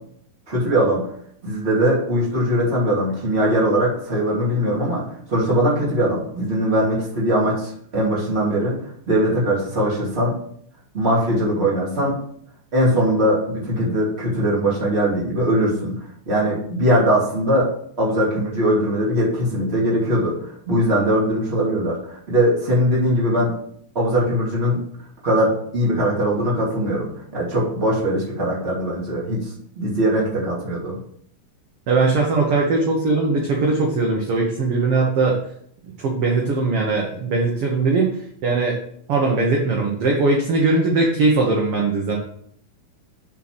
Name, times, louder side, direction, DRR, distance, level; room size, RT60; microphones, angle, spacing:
voice 1, 0.5-1.0 1.4-8.8 9.1-10.4 10.9-12.2 12.7-16.0 16.3-17.7 18.0-23.6 23.9-24.8 25.2-31.0, equal, 20° right, -5 dB, 2.6 m, -21 dB
voice 2, 31.9-35.4 36.0-38.1 38.4-38.8 39.1-42.2, right 3 dB, 55° right, -1 dB, 1.9 m, -20 dB
7.8 x 4.6 x 6.2 m, 0.66 s
omnidirectional pair, 3.7 m